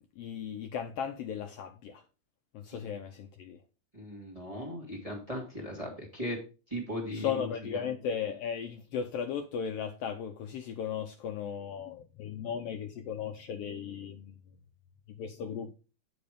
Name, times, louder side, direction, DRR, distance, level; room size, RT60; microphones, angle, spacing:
voice 1, 0.2-2.0 2.5-3.6 7.1-14.4 15.2-15.7, left 7 dB, 90° left, 1.3 m, -36 dB
voice 2, 3.9-6.4 6.7-7.8, equal, 15° right, 1.4 m, -38 dB
8.8 x 5.1 x 5.0 m
omnidirectional pair, 3.5 m